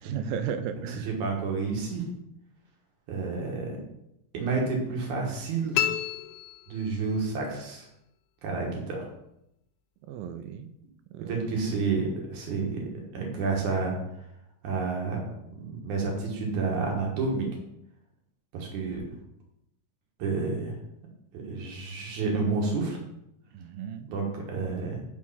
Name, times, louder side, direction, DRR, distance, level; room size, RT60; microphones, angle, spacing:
voice 1, 0.0-1.1 10.1-10.7 11.1-11.5 23.5-24.1, right 8 dB, 90° right, 10 dB, 2.4 m, -35 dB
voice 2, 1.2-2.0 3.1-3.8 4.3-5.8 6.7-7.9 8.4-9.1 11.2-12.8 13.1-14.0 14.6-15.2 15.6-17.5 18.5-19.2 20.2-20.8 21.5-23.0 24.1-25.0, right 4 dB, 65° right, 0 dB, 2.6 m, -30 dB
sound 1, 5.7-7.3, left 12 dB, 85° left, 1.9 m, -30 dB
6.0 x 4.6 x 5.6 m, 0.81 s
omnidirectional pair, 4.2 m